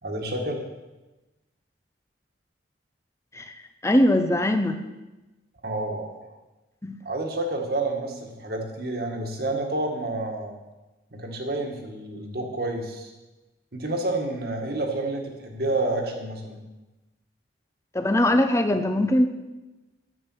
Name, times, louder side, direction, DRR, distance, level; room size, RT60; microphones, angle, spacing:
voice 1, 0.0-0.6 5.6-6.3 7.1-10.5 11.1-13.1 13.7-16.6, right 2 dB, 55° right, 2 dB, 1.9 m, -29 dB
voice 2, 3.8-4.8 6.8-7.0 17.9-19.3, left 1 dB, 15° left, 7 dB, 0.7 m, -21 dB
11.0 x 8.7 x 6.3 m, 1.1 s
head